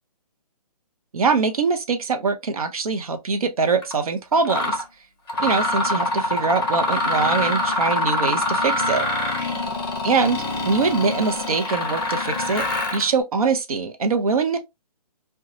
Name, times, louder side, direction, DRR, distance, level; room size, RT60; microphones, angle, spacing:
voice 1, 1.1-4.8 5.4-9.1 10.0-12.7 12.9-14.6, right 4 dB, 60° right, 0.6 m, -23 dB
Mechanisms, 3.8-3.9 4.4-4.8 5.3-13.1, left 1 dB, 40° left, 0.7 m, -24 dB
2.5 x 2.2 x 2.8 m
hypercardioid pair, 175°, 20 cm